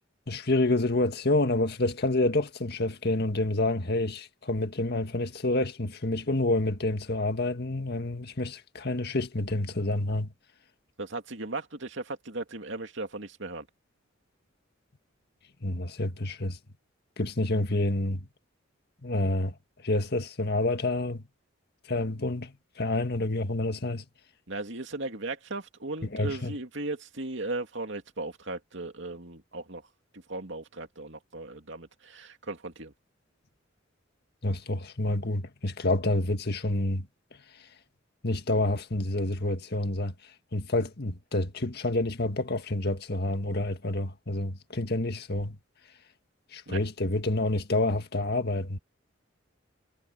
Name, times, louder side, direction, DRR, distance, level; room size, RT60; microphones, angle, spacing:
voice 1, 0.3-10.3 15.6-16.6 17.2-18.2 19.0-19.5 19.8-21.2 21.9-24.1 26.1-26.5 34.4-37.1 38.2-40.1 40.5-45.6 46.5-48.8, left 2 dB, 55° left, 1.8 m, -28 dB
voice 2, 11.0-13.7 24.5-29.8 30.1-32.9 46.7-46.8, right 2 dB, 65° right, 2.6 m, -37 dB
head